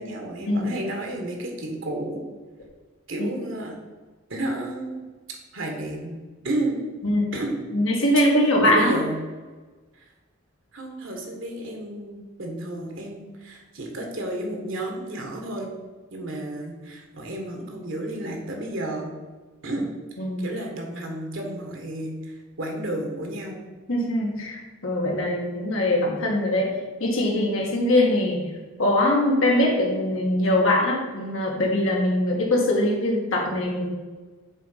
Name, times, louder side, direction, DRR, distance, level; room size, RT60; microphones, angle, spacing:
voice 1, 0.0-2.2 3.1-3.7 4.3-5.0 5.5-6.2 6.4-6.8 7.3-7.5 8.6-9.2 9.9-10.0 10.7-15.7 16.1-19.1 19.6-19.9 20.4-23.6, right 1 dB, 70° right, 2 dB, 1.4 m, -31 dB
voice 2, 7.7-8.9 20.2-20.4 23.9-26.7 27.0-28.4 28.8-33.9, left 1 dB, 75° left, -2 dB, 2.0 m, -22 dB
7.3 x 3.9 x 5.8 m, 1.3 s
head